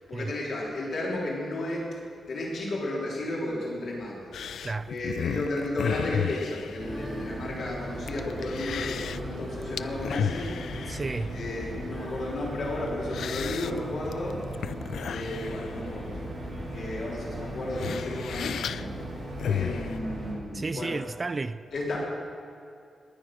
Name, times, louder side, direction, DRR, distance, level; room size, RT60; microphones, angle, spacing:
voice 1, 0.1-1.9 2.3-4.3 4.9-10.5 11.3-14.4 15.1-16.2 16.7-19.0 19.4-21.0 21.7-22.0, left 1 dB, 65° left, 3.9 m, -33 dB
sound 1, 4.3-20.0, left 8 dB, 90° left, 0.4 m, -35 dB
voice 2, 4.6-4.9 10.9-11.3 20.5-21.6, right 3 dB, 25° right, 0.3 m, -32 dB
Female singing, 6.7-13.7 14.4-14.5, equal, 5° right, 3.1 m, -47 dB
sound 2, 6.8-20.3, right 1 dB, 45° right, 4.7 m, -38 dB
20.0 x 10.5 x 6.2 m
wide cardioid pair, 165°, 0 cm